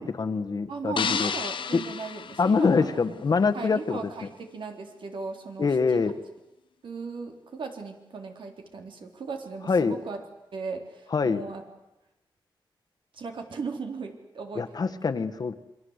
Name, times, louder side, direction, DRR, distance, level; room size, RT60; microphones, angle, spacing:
voice 1, 0.0-1.3 1.7-1.8 2.4-4.0 5.6-6.1 9.7-10.0 11.1-11.4 14.5-15.5, left 4 dB, 50° left, 8 dB, 1.5 m, -24 dB
voice 2, 0.7-3.0 3.5-6.1 6.8-10.2 10.5-11.6 13.1-15.0, right 4 dB, 70° right, 3 dB, 3.8 m, -37 dB
sound 1, 1.0-3.2, left 7 dB, 70° left, 1.0 m, -32 dB
28.0 x 23.5 x 8.2 m, 0.95 s
wide cardioid pair, 145°, 9 cm